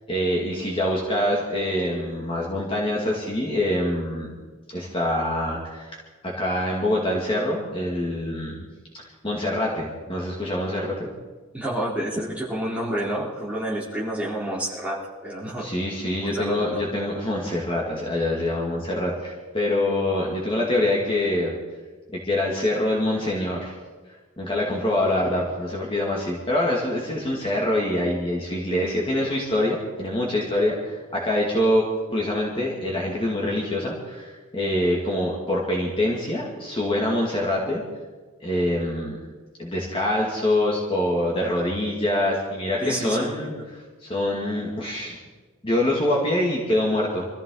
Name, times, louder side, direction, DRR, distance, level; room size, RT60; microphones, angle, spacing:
voice 1, 0.1-4.3 4.7-6.0 6.2-8.5 8.9-11.1 15.6-21.6 22.2-23.7 24.4-31.8 32.1-37.8 38.4-39.2 39.6-45.2 45.6-47.3, left 1 dB, 25° left, -3 dB, 2.3 m, -25 dB
voice 2, 11.5-15.7 16.2-16.8 42.8-43.5, right 1 dB, 5° right, -7 dB, 3.7 m, -29 dB
24.5 x 14.5 x 4.0 m, 1.4 s
head